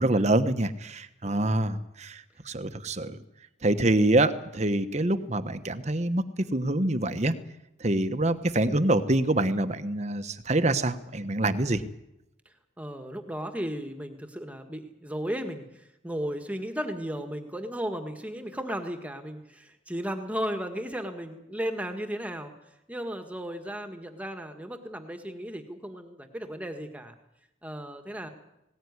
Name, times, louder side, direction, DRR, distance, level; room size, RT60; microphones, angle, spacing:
voice 1, 0.0-2.1 2.5-3.2 3.6-6.2 6.5-7.3 7.8-11.8, right 1 dB, 35° right, 10 dB, 1.1 m, -25 dB
voice 2, 1.2-1.7 12.4-22.5 22.9-27.1 27.6-28.3, equal, 10° right, 6 dB, 1.7 m, -35 dB
19.0 x 18.0 x 9.7 m, 0.86 s
head